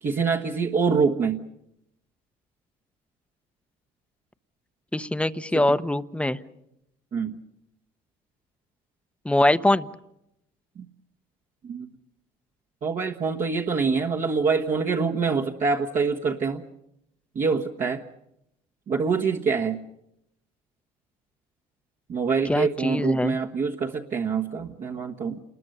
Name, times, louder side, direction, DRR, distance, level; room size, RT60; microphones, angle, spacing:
voice 1, 0.0-1.4 5.5-5.6 7.1-7.4 10.8-10.9 11.6-11.9 12.8-16.6 17.3-18.0 18.9-19.8 22.1-25.4, right 5 dB, 50° right, -1 dB, 1.5 m, -25 dB
voice 2, 4.9-6.4 9.2-9.9 22.5-23.4, left 1 dB, 5° left, 12 dB, 0.8 m, -23 dB
28.0 x 21.0 x 6.7 m, 0.82 s
cardioid pair, 110°, 17 cm